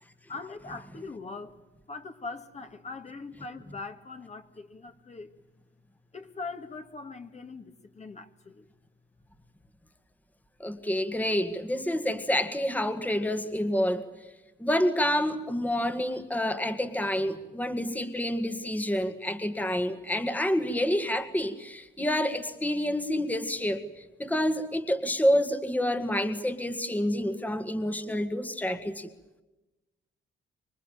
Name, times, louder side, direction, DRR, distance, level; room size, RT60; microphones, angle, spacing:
voice 1, 0.3-1.6 1.9-5.3 6.1-8.7, left 4 dB, 35° left, 2.1 m, -41 dB
voice 2, 10.6-14.0 14.6-29.1, left 1 dB, 10° left, 1.9 m, -28 dB
26.5 x 23.0 x 9.2 m
cardioid pair, 90°, 20 cm